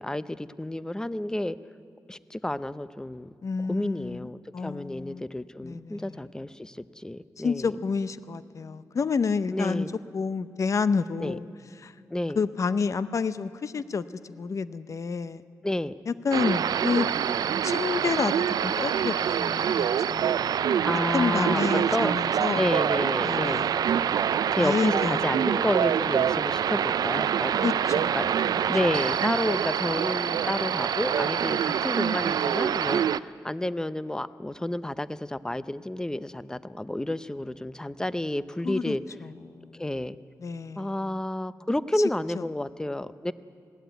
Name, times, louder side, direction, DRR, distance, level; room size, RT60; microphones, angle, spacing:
voice 1, 0.0-1.6 2.1-3.3 3.7-7.8 9.5-9.9 11.2-11.4 12.1-12.4 15.6-15.9 19.8-20.0 20.8-21.6 21.9-22.1 22.5-23.7 24.5-27.6 28.1-28.3 28.7-39.0 39.7-40.2 40.8-43.3, left 1 dB, 10° left, 15 dB, 0.6 m, -30 dB
voice 2, 3.4-5.3 5.6-6.2 7.4-9.9 10.1-11.5 11.8-11.9 12.4-15.4 16.1-17.1 17.6-20.4 21.1-22.6 23.2-23.8 24.6-25.3 27.6-28.1 38.6-39.0 39.2-39.8 40.4-41.2 42.3-42.4, left 5 dB, 55° left, 14 dB, 0.7 m, -29 dB
sound 1, 16.3-33.2, right 8 dB, 85° right, 0.4 m, -25 dB
20.0 x 15.5 x 9.2 m, 2.4 s
cardioid pair, 90°, 7 cm